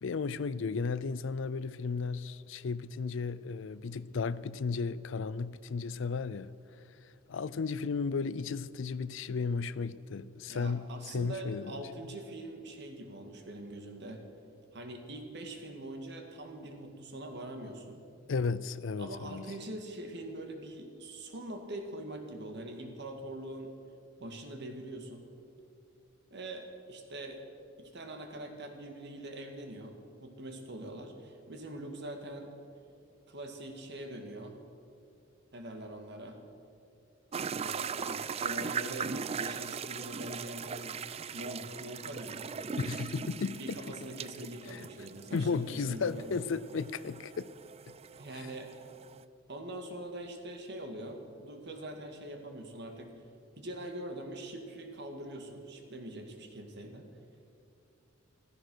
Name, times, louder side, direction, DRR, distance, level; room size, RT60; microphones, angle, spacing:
voice 1, 0.0-6.5 7.0-10.9 11.1-11.8 18.3-19.4 42.8-43.8 44.7-44.9 45.3-47.5, left 4 dB, 70° left, 0.5 m, -34 dB
voice 2, 10.5-14.2 14.7-18.0 19.0-23.7 24.2-25.2 26.3-27.4 27.8-29.9 30.2-32.5 33.3-34.6 35.5-36.4 37.5-41.0 41.3-42.5 43.4-46.4 48.2-48.7 49.5-53.1 53.5-57.1, right 1 dB, 60° right, 2.0 m, -43 dB
sound 1, 37.3-49.2, right 6 dB, 30° right, 0.4 m, -40 dB
15.0 x 14.0 x 6.3 m
head